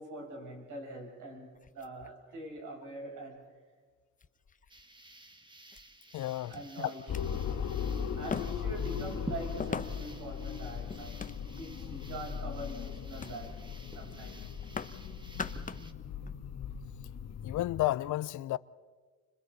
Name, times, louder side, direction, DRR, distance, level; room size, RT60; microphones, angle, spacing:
voice 1, 0.0-3.4 6.5-7.3 8.2-11.3 11.5-14.4, right 2 dB, 85° right, 6.9 m, -44 dB
sound 1, 1.5-2.6 3.5-3.6 4.2-4.8 5.7-5.8 6.5-6.6 7.0-7.2 8.3-8.8 9.6-10.2 10.9-11.7 12.3-12.6 13.2-13.4 13.7-13.9 14.1-15.0 15.3-15.9 16.2-16.4, left 5 dB, 25° left, 0.9 m, -41 dB
sound 2, 4.7-15.9, right 2 dB, 15° right, 1.6 m, -51 dB
voice 2, 6.1-6.9 17.4-18.6, left 15 dB, 75° left, 0.6 m, -32 dB
sound 3, 7.1-17.9, left 7 dB, 60° left, 1.6 m, -38 dB
30.0 x 26.0 x 4.2 m
cardioid pair, 90°, 30 cm